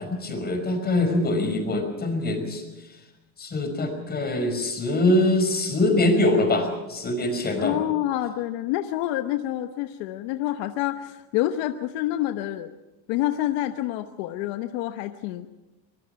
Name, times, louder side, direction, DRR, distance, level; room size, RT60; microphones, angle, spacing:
voice 1, 0.0-2.7 3.4-7.8, left 2 dB, 20° left, 5 dB, 5.3 m, -23 dB
voice 2, 7.6-12.8 13.1-15.5, left 14 dB, 70° left, 8 dB, 1.1 m, -27 dB
24.0 x 21.0 x 5.8 m, 1.1 s
supercardioid pair, 135°, 43 cm